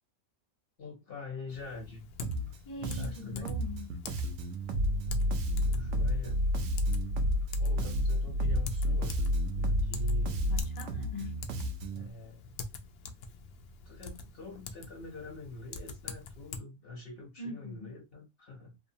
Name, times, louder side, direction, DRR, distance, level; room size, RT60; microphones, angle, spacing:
voice 1, 0.8-2.1 2.8-3.5 5.5-6.4 7.6-9.3 9.6-10.5 11.9-12.5 13.8-18.8, left 3 dB, 45° left, 0.9 m, -45 dB
Typing, 1.5-16.6, left 4 dB, 70° left, 0.6 m, -46 dB
Bass guitar, 2.2-2.6 2.8-7.5 7.8-12.1, right 2 dB, 65° right, 0.8 m, -36 dB
voice 2, 2.6-3.9 10.5-11.4 17.4-18.0, left 2 dB, 20° left, 0.6 m, -42 dB
sound 1, 4.7-10.6, left 1 dB, 80° right, 1.2 m, -29 dB
2.8 x 2.0 x 2.6 m
omnidirectional pair, 1.6 m